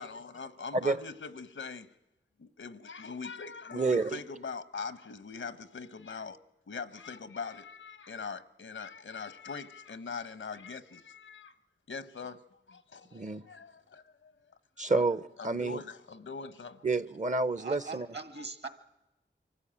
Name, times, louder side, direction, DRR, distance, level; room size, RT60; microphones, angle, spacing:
voice 1, 0.0-1.9 2.4-6.4 6.7-11.5 11.9-12.4 12.7-14.3 14.9-15.1 15.4-16.9, left 5 dB, 85° left, 14 dB, 0.9 m, -42 dB
voice 2, 3.7-4.2 13.1-13.4 14.8-15.8 16.8-18.1, right 3 dB, 40° right, 17 dB, 0.7 m, -29 dB
voice 3, 17.6-18.7, right 4 dB, 60° right, 10 dB, 1.8 m, -41 dB
24.0 x 14.0 x 8.8 m, 0.97 s
cardioid pair, 40°, 20 cm